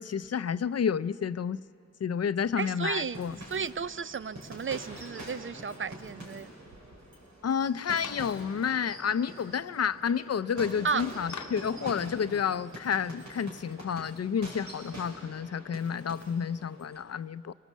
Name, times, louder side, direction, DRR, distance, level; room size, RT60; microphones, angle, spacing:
voice 1, 0.0-1.6 2.0-3.4 7.4-17.5, left 7 dB, 60° left, 0.5 m, -30 dB
voice 2, 2.6-3.2 3.5-6.5 10.8-11.0, right 6 dB, 45° right, 0.5 m, -33 dB
sound 1, 3.1-17.0, right 1 dB, 90° right, 4.8 m, -45 dB
Clapping, 8.0-8.4 11.3-11.7, left 6 dB, 75° left, 0.9 m, -43 dB
25.5 x 19.0 x 7.3 m
wide cardioid pair, 65°, 29 cm